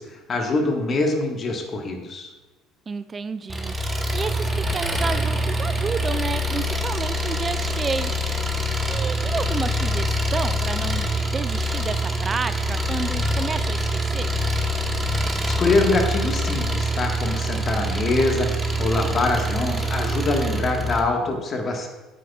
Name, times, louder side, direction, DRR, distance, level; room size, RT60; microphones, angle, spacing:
voice 1, 0.0-2.3 15.5-18.5 18.8-21.9, left 2 dB, 40° left, 2 dB, 1.5 m, -24 dB
voice 2, 2.9-3.7 4.1-14.3, right 5 dB, 30° right, 12 dB, 0.4 m, -31 dB
Engine, 3.5-21.0, equal, 15° right, 1.2 m, -25 dB
9.0 x 8.4 x 2.4 m, 1.2 s
hypercardioid pair, 65°, 0 cm